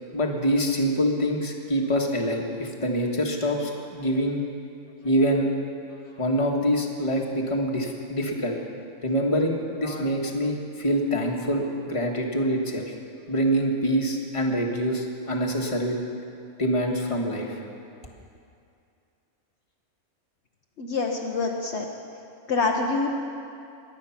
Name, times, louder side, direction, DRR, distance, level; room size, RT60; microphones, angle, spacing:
voice 1, 0.1-4.4 5.0-5.5 6.2-8.6 9.0-12.9 13.3-16.0 16.6-17.6, equal, 25° left, 0 dB, 1.5 m, -25 dB
voice 2, 20.8-21.9 22.5-23.1, left 4 dB, 60° left, 1 dB, 1.2 m, -26 dB
22.5 x 8.8 x 5.8 m, 2.4 s
omnidirectional pair, 1.3 m